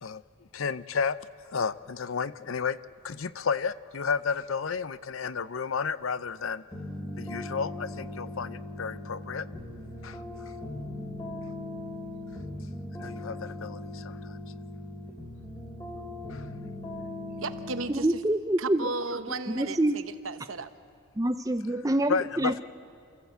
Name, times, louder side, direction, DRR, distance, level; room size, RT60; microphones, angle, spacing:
voice 1, 0.5-1.2 1.5-2.8 3.0-6.6 7.2-9.5 10.0-10.2 13.0-14.4 16.3-16.4 22.1-22.6, left 5 dB, 80° left, 0.6 m, -32 dB
sound 1, 6.7-17.9, left 1 dB, 20° left, 3.0 m, -39 dB
voice 2, 17.4-18.1 18.6-20.7, right 3 dB, 80° right, 1.0 m, -34 dB
voice 3, 17.9-18.9 19.5-20.0 21.2-22.6, right 1 dB, 15° right, 0.6 m, -26 dB
28.5 x 14.5 x 8.1 m
head